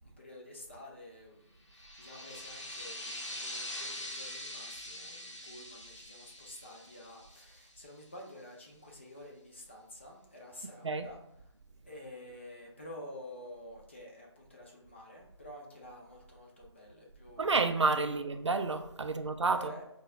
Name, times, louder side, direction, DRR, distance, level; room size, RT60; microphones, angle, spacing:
voice 1, 0.0-11.2 11.8-17.6 18.0-18.3 19.1-19.2 19.5-19.8, left 1 dB, 25° left, 0.5 m, -50 dB
sound 1, 1.7-8.0, left 1 dB, 80° left, 0.8 m, -44 dB
voice 2, 17.4-19.6, right 4 dB, 75° right, 0.4 m, -29 dB
4.7 x 2.2 x 2.3 m
figure-of-eight pair, 160°, 15 cm